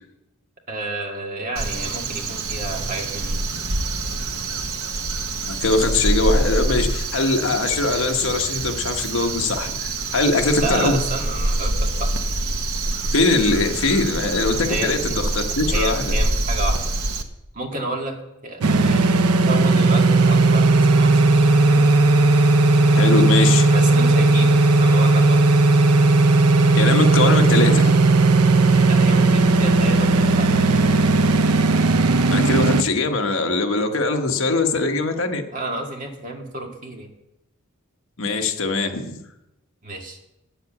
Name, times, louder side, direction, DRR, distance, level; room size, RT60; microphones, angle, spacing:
voice 1, 0.7-3.4 10.6-12.1 14.7-15.2 15.7-16.8 17.5-18.2 18.4-21.2 23.7-25.4 28.7-30.9 35.5-37.1 39.8-40.2, right 2 dB, 35° right, 1 dB, 1.9 m, -30 dB
Crow, 1.6-17.2, right 2 dB, 70° right, 1.1 m, -25 dB
voice 2, 5.4-11.0 13.1-15.2 15.6-16.1 22.9-23.7 26.8-28.0 32.3-35.4 38.2-39.2, left 3 dB, 60° left, 5 dB, 1.2 m, -21 dB
sound 1, 18.6-32.8, right 3 dB, 85° right, 0.6 m, -16 dB
9.5 x 7.8 x 8.4 m, 0.88 s
head